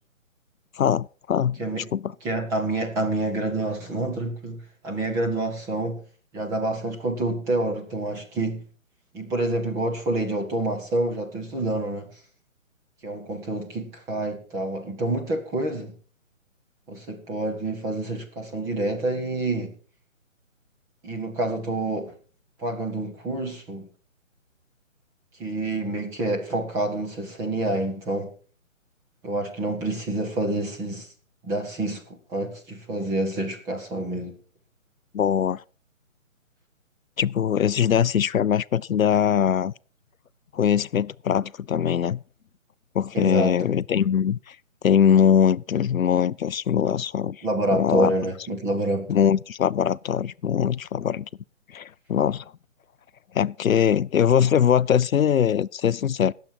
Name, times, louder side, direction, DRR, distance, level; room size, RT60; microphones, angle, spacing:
voice 1, 0.8-1.6 1.9-2.1 35.1-35.6 37.2-39.7 40.5-42.2 42.9-44.6 44.8-47.4 47.7-48.1 49.1-51.3 51.7-52.4 53.3-56.3, left 8 dB, 80° left, 0.5 m, -22 dB
voice 2, 2.2-6.0 6.3-8.6 9.1-12.1 13.0-15.9 16.9-19.7 21.0-22.1 22.6-23.9 25.4-28.3 29.2-31.1 31.4-32.0 32.3-34.3 43.1-43.7 47.4-49.1, right 2 dB, 10° right, 1.0 m, -27 dB
19.0 x 7.6 x 4.7 m
figure-of-eight pair, 145°, 40 cm